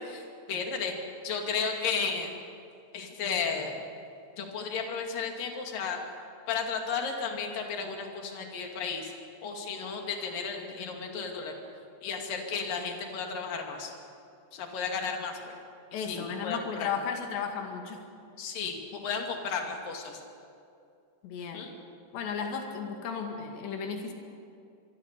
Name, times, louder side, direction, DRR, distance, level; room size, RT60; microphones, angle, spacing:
voice 1, 0.1-0.9 1.2-2.3 2.9-3.7 4.4-6.0 6.5-9.1 9.4-11.6 12.0-13.9 14.5-15.5 16.1-16.9 18.4-20.2 21.5-21.7, left 5 dB, 55° left, 2 dB, 4.0 m, -33 dB
voice 2, 15.9-18.0 21.2-21.6 22.1-24.1, left 6 dB, 80° left, 3 dB, 4.4 m, -34 dB
27.0 x 22.5 x 6.8 m, 2.5 s
omnidirectional pair, 4.9 m